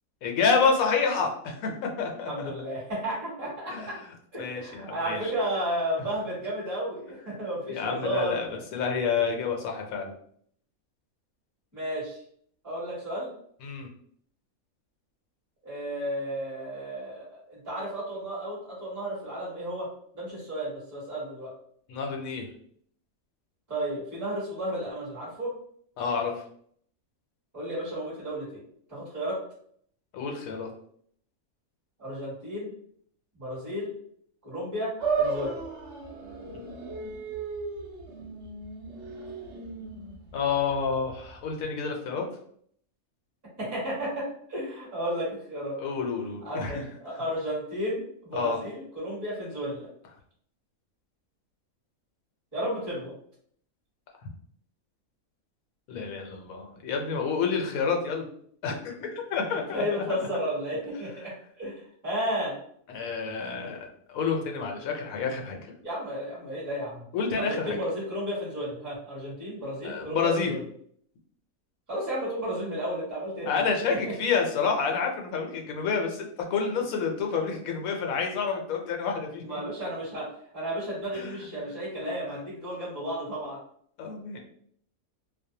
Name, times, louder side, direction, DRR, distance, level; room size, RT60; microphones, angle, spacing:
voice 1, 0.2-2.5 3.7-3.9 4.4-5.3 7.7-10.1 13.6-13.9 21.9-22.5 26.0-26.3 30.1-30.7 36.5-36.7 37.0-37.1 40.3-42.2 45.8-46.8 48.3-48.6 55.9-58.2 58.6-59.8 60.1-60.2 62.9-65.7 67.1-67.8 69.8-70.5 73.5-79.6 81.1-81.6 84.0-84.4, left 5 dB, 75° left, 2 dB, 1.0 m, -29 dB
voice 2, 2.3-4.0 4.3-8.4 11.7-12.2 12.6-13.3 15.6-19.9 20.1-21.5 23.7-25.5 27.5-28.6 28.9-29.4 32.0-32.7 33.4-33.9 34.4-35.6 43.6-45.8 46.4-49.9 52.5-53.1 59.7-62.6 65.8-67.0 67.4-70.6 71.9-73.6 74.0-74.1 79.4-80.3 80.5-83.6, equal, 15° right, -7 dB, 1.0 m, -33 dB
sound 1, 35.0-41.4, right 4 dB, 60° right, 0.8 m, -34 dB
2.5 x 2.1 x 2.7 m, 0.63 s
omnidirectional pair, 1.5 m